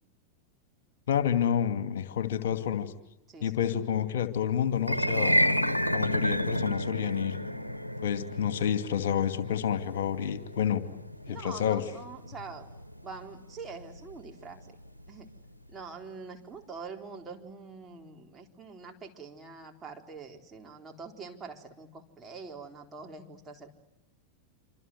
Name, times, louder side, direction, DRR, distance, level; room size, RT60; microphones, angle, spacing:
voice 1, 1.1-2.9 3.4-5.4 5.9-7.4 8.0-10.8 11.3-11.8, left 9 dB, 60° left, 9 dB, 2.4 m, -29 dB
sound 1, 4.8-15.1, equal, 85° left, 1.1 m, -31 dB
voice 2, 11.3-12.7 13.0-14.8 15.1-15.3 15.7-23.7, right 4 dB, 20° right, 1 dB, 4.2 m, -44 dB
27.5 x 27.0 x 8.0 m, 0.91 s
figure-of-eight pair, 90°, 0 cm